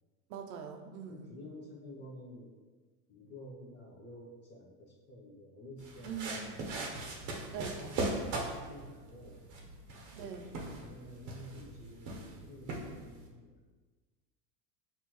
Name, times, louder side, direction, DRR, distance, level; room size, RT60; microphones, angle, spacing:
voice 1, 0.3-1.3 6.0-6.5 7.5-7.8 10.1-10.6, right 6 dB, 85° right, 5 dB, 0.7 m, -42 dB
voice 2, 1.1-2.6 3.1-7.4 7.7-9.7 10.3-13.7, left 1 dB, 25° left, -3 dB, 0.7 m, -51 dB
sound 1, 5.8-13.3, right 2 dB, 40° right, 0.8 m, -40 dB
5.4 x 2.5 x 3.0 m, 1.4 s
supercardioid pair, 135°, 47 cm